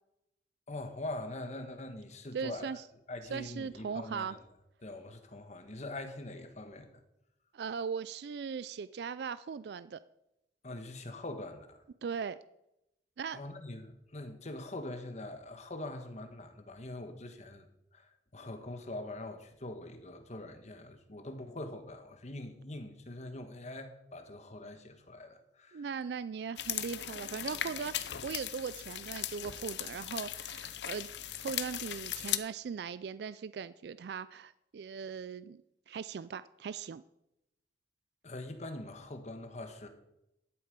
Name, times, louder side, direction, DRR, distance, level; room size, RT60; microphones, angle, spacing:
voice 1, 0.7-2.8 3.1-4.4 4.8-7.0 10.6-11.8 13.3-17.7 17.9-25.9 38.2-39.9, left 2 dB, 40° left, 7 dB, 1.3 m, -43 dB
voice 2, 2.3-2.8 3.3-4.4 7.5-10.0 12.0-12.4 13.2-13.4 25.7-31.1 31.4-35.6 35.9-37.0, right 6 dB, 65° right, 16 dB, 0.3 m, -39 dB
sound 1, 26.6-32.4, left 11 dB, 80° left, 0.7 m, -38 dB
12.5 x 7.9 x 5.2 m, 0.85 s
head